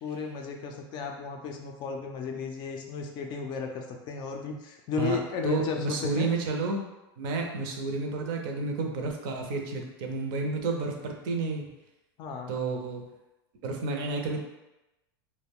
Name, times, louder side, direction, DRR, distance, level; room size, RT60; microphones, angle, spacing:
voice 1, 0.0-6.3 12.2-12.5, left 5 dB, 35° left, 3 dB, 0.4 m, -34 dB
voice 2, 5.4-6.9 7.2-11.7 12.5-13.0 13.6-14.4, right 3 dB, 60° right, 2 dB, 0.6 m, -31 dB
2.3 x 2.1 x 3.4 m, 0.98 s
supercardioid pair, 130°, 13 cm